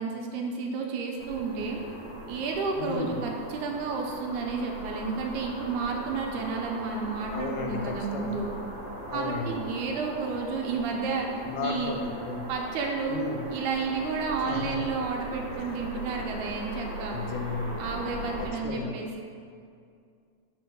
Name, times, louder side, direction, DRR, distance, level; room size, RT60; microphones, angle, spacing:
voice 1, 0.0-1.8 2.3-8.5 9.1-11.3 11.6-12.0 12.5-13.3 13.5-17.2 17.8-19.2, right 4 dB, 85° right, 1 dB, 2.1 m, -31 dB
sound 1, 1.2-18.5, right 1 dB, 45° right, 1.8 m, -40 dB
voice 2, 2.8-3.3 7.3-8.4 9.1-9.6 11.5-12.5 13.1-13.5 14.5-14.9 15.6-15.7 17.1-17.8 18.4-19.0, left 4 dB, 80° left, 3 dB, 1.9 m, -34 dB
4.6 x 4.3 x 5.8 m, 2.3 s
omnidirectional pair, 3.5 m